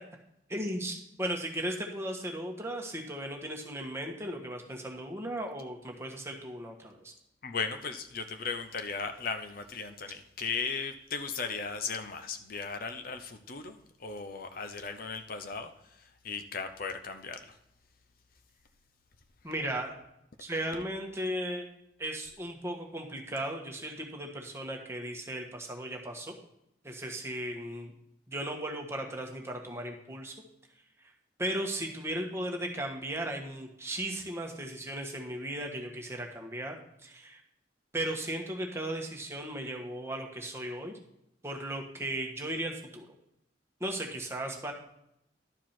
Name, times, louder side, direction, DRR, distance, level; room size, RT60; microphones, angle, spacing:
voice 1, 0.5-7.1 19.4-20.0 20.4-21.6 22.0-26.3 26.8-27.9 28.3-30.3 31.4-36.7 37.0-37.4 37.9-41.0 41.4-43.1 43.8-44.7, right 1 dB, 15° right, 1 dB, 1.4 m, -36 dB
voice 2, 7.4-17.6, left 5 dB, 55° left, 8 dB, 0.7 m, -37 dB
12.0 x 4.8 x 5.9 m, 0.79 s
head